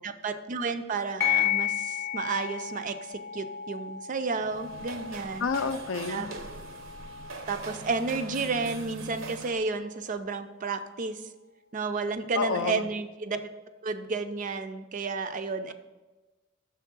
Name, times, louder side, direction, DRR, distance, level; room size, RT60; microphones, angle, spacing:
voice 1, 0.0-5.5 6.1-6.3 7.5-11.2 11.7-13.4 13.8-15.7, right 4 dB, 40° right, 9 dB, 0.4 m, -32 dB
sound 1, 1.2-10.2, left 11 dB, 15° left, 0.6 m, -35 dB
sound 2, 4.3-9.7, right 4 dB, 75° right, 0.7 m, -42 dB
voice 2, 5.4-6.3 12.3-12.9, left 5 dB, 70° left, 11 dB, 0.4 m, -29 dB
6.6 x 3.5 x 5.9 m, 1.2 s
head